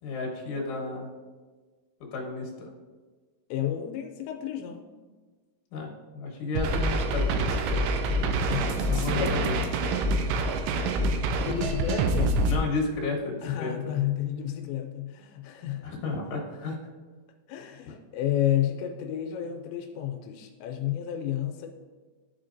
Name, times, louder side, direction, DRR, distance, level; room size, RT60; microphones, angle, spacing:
voice 1, 0.0-1.1 2.1-2.7 5.7-7.8 8.1-8.4 8.9-9.6 12.4-13.9 15.8-16.8, left 3 dB, 65° left, -2 dB, 2.4 m, -32 dB
voice 2, 3.5-4.9 8.5-9.4 10.9-12.4 13.4-15.9 17.5-21.7, left 11 dB, 85° left, 3 dB, 2.8 m, -31 dB
sound 1, 6.6-12.6, right 2 dB, 85° right, 2.6 m, -26 dB
12.0 x 4.4 x 2.6 m, 1.4 s
omnidirectional pair, 5.1 m